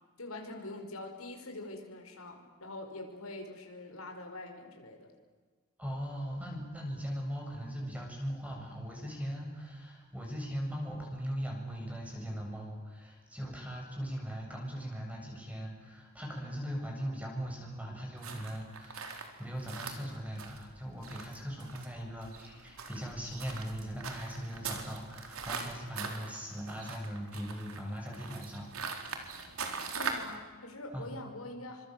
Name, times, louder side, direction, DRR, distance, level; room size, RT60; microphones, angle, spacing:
voice 1, 0.2-5.1 29.9-31.9, left 2 dB, 90° left, 3 dB, 5.6 m, -44 dB
voice 2, 5.8-28.7 30.9-31.2, equal, 5° right, 0 dB, 7.9 m, -39 dB
sound 1, 18.2-30.4, right 5 dB, 85° right, 4.2 m, -42 dB
28.5 x 26.0 x 7.9 m, 1.4 s
head